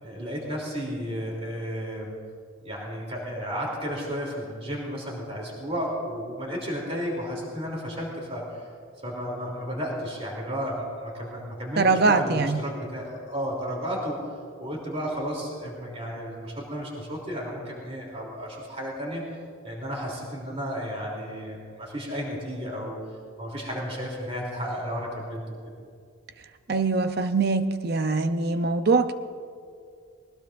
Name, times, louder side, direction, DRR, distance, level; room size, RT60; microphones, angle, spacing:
voice 1, 0.0-2.1 2.6-8.6 9.0-14.2 14.6-19.2 19.6-23.0 23.4-25.8, equal, 30° right, -2 dB, 3.2 m, -33 dB
voice 2, 11.8-12.6 26.7-29.1, right 3 dB, 50° right, 9 dB, 0.6 m, -23 dB
20.5 x 19.5 x 2.6 m, 2.2 s
head